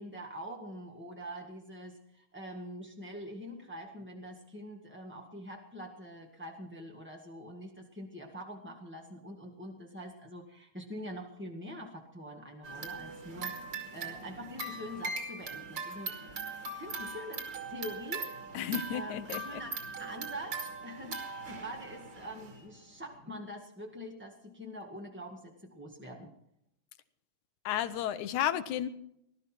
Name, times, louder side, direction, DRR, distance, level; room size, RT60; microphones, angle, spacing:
voice 1, 0.0-13.6 13.9-16.1 16.7-18.3 18.9-19.7 20.0-26.3, equal, 5° right, 0 dB, 0.9 m, -44 dB
sound 1, 12.6-22.6, right 3 dB, 40° right, 3.0 m, -40 dB
voice 2, 18.5-19.6 27.7-28.9, left 10 dB, 75° left, 12 dB, 2.2 m, -33 dB
19.5 x 13.0 x 4.5 m, 0.75 s
omnidirectional pair, 3.5 m